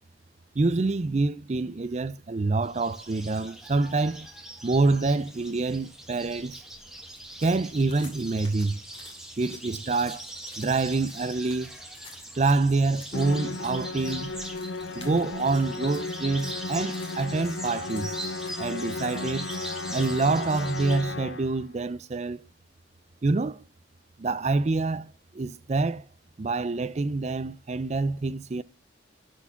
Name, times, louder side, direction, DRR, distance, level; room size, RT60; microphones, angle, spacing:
voice 1, 0.6-4.3 4.6-6.6 7.4-8.8 9.4-10.2 10.6-11.8 12.4-14.3 15.0-18.1 18.6-19.5 19.9-22.4 23.2-23.6 24.2-26.0 26.4-28.6, right 3 dB, 35° right, 0.4 m, -26 dB
sound 1, 2.6-21.0, right 1 dB, 5° right, 1.4 m, -42 dB
sound 2, 7.1-20.7, left 3 dB, 30° left, 2.3 m, -52 dB
Musical instrument, 13.1-21.6, left 3 dB, 70° left, 0.8 m, -35 dB
11.5 x 4.5 x 7.0 m
head